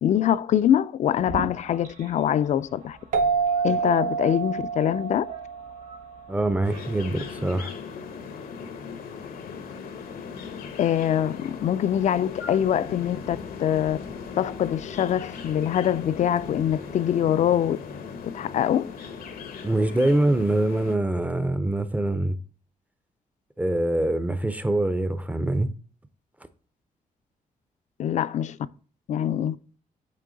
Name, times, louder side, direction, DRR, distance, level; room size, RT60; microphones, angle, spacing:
voice 1, 0.0-3.0 3.6-5.3 10.8-14.0 14.4-17.8 18.2-18.9 28.0-28.6 29.1-29.6, left 10 dB, 50° left, 0.4 m, -24 dB
sound 1, 1.1-7.6, right 3 dB, 90° right, 2.9 m, -43 dB
sound 2, 3.1-6.4, right 5 dB, 60° right, 0.7 m, -27 dB
voice 2, 6.3-7.7 19.6-22.4 23.6-25.7, right 1 dB, 10° right, 0.4 m, -24 dB
sound 3, 6.6-21.0, left 5 dB, 80° left, 0.9 m, -38 dB
8.4 x 3.3 x 3.8 m
wide cardioid pair, 160°, 15 cm